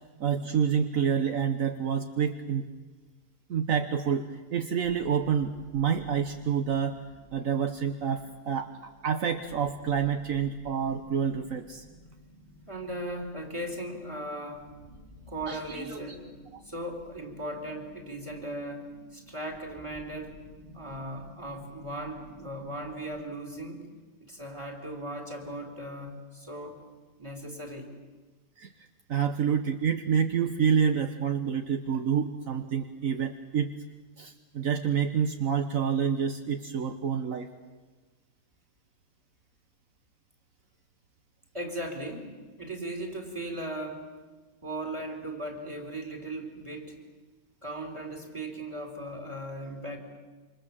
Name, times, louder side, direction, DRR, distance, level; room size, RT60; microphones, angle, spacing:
voice 1, 0.2-2.7 3.5-7.0 7.3-8.7 9.0-11.8 15.5-16.0 28.6-28.7 29.1-33.7 34.2-37.5, right 7 dB, 70° right, 7 dB, 1.4 m, -28 dB
sound 1, 4.8-23.2, left 1 dB, 40° right, 4.0 m, -54 dB
voice 2, 12.7-14.7 15.3-16.3 16.6-20.4 20.7-23.9 24.2-26.8 27.2-27.9 41.5-44.1 44.6-47.0 47.6-50.0, right 1 dB, 20° right, 3 dB, 4.2 m, -37 dB
27.5 x 26.0 x 7.5 m, 1.3 s
omnidirectional pair, 1.5 m